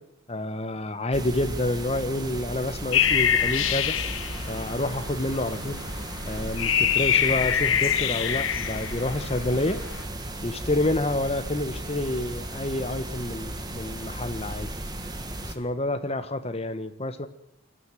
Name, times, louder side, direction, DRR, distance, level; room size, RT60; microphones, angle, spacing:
voice 1, 0.3-3.9 4.5-5.8 6.2-9.8 10.4-14.7 15.4-17.3, left 1 dB, 30° left, 10 dB, 1.3 m, -28 dB
sound 1, 1.1-15.5, right 1 dB, 20° right, 1.8 m, -35 dB
sound 2, 2.9-10.0, left 9 dB, 65° left, 1.2 m, -26 dB
23.5 x 13.5 x 9.1 m, 0.81 s
head